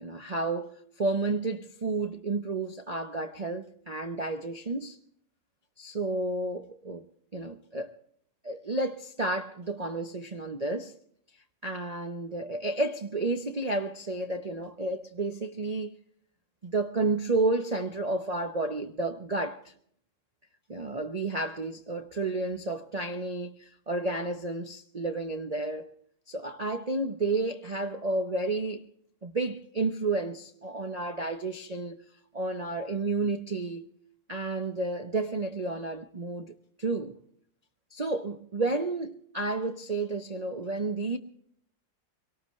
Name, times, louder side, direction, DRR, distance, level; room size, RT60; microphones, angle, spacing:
voice 1, 0.0-5.0 5.8-7.0 7.3-7.9 8.4-10.9 11.6-16.0 16.6-19.7 20.7-25.9 26.3-28.8 29.2-32.0 32.3-33.9 34.3-36.5 36.8-37.1 37.9-41.2, right 2 dB, 75° right, 0.3 m, -31 dB
23.0 x 18.5 x 3.2 m
omnidirectional pair, 2.1 m